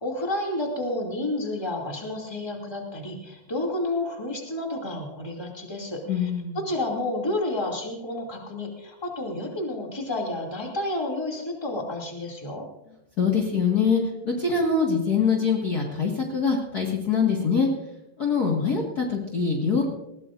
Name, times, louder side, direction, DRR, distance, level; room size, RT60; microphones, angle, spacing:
voice 1, 0.0-6.3 6.5-12.6, left 1 dB, 10° left, -1 dB, 1.2 m, -30 dB
voice 2, 6.1-6.6 13.2-17.7 18.2-19.8, left 5 dB, 90° left, -2 dB, 0.8 m, -24 dB
20.5 x 17.0 x 2.6 m, 0.88 s
omnidirectional pair, 4.9 m